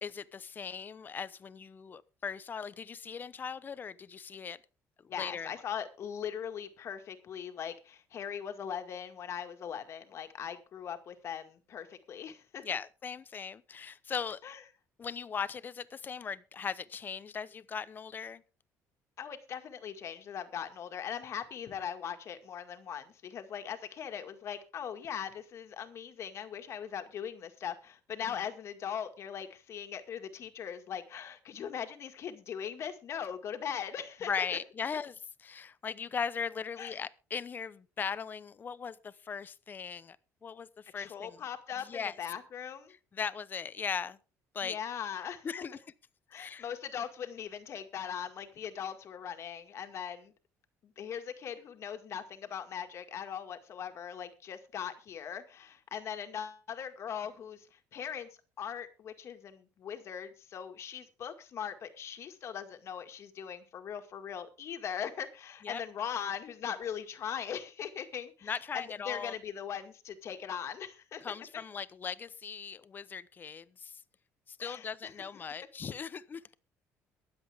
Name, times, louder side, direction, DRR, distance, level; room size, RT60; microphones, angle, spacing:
voice 1, 0.0-4.6 5.2-5.5 12.6-14.4 15.0-18.4 28.2-28.4 34.3-40.2 40.4-41.4 41.8-42.2 43.1-44.2 44.5-44.8 45.4-45.8 46.3-46.7 65.6-65.8 68.4-69.3 71.2-74.0 74.5-76.4, left 6 dB, 35° left, 0.8 m, -38 dB
voice 2, 5.1-12.6 14.4-14.6 19.2-34.5 36.8-36.9 41.0-42.9 44.6-45.5 46.3-50.3 50.8-58.3 58.6-71.3 74.6-75.1, left 8 dB, 50° left, 2.0 m, -40 dB
23.0 x 7.8 x 3.6 m
cardioid pair, 110°, 6 cm